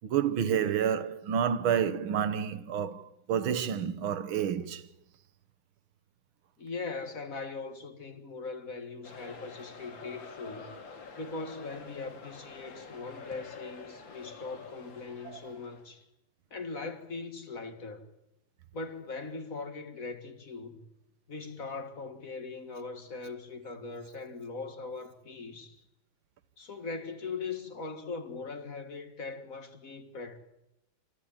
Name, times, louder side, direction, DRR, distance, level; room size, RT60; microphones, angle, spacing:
voice 1, 0.0-4.8 15.3-15.4, right 8 dB, 85° right, 1.9 m, -29 dB
voice 2, 6.6-10.7 11.2-16.0 16.5-18.0 18.7-20.9 21.3-25.8 26.6-30.4, left 4 dB, 45° left, 2.1 m, -40 dB
sound 1, 9.0-15.9, left 4 dB, 70° left, 3.0 m, -47 dB
27.5 x 14.0 x 8.8 m
omnidirectional pair, 2.2 m